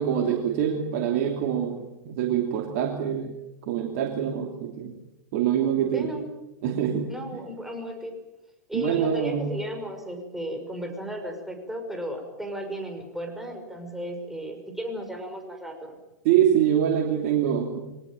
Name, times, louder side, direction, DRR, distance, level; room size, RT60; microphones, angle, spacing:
voice 1, 0.0-3.3 3.7-5.0 5.3-6.1 6.6-7.1 8.7-9.5 16.2-17.8, right 9 dB, 50° right, 2 dB, 2.9 m, -25 dB
voice 2, 5.9-6.3 7.1-8.1 8.7-16.0, equal, 5° right, 3 dB, 5.9 m, -34 dB
22.5 x 19.0 x 9.2 m, 0.97 s
hypercardioid pair, 105°, 10 cm